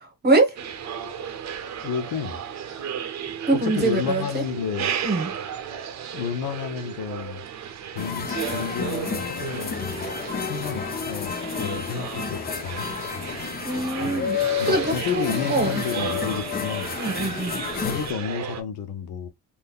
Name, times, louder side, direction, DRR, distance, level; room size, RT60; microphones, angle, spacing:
voice 1, 0.0-0.6 3.5-4.4 5.0-5.3 13.3-15.8 16.9-17.6, right 2 dB, 25° right, 1.1 m, -24 dB
sound 1, 0.6-18.6, right 8 dB, 50° right, 0.7 m, -34 dB
voice 2, 1.8-2.4 3.5-4.9 6.1-7.4 7.9-10.2 10.5-11.3 11.6-12.9 14.6-16.9 17.8-19.3, left 7 dB, 85° left, 0.8 m, -31 dB
sound 2, 8.0-18.1, left 6 dB, 25° left, 0.5 m, -30 dB
3.6 x 2.6 x 2.3 m
cardioid pair, 120°, 36 cm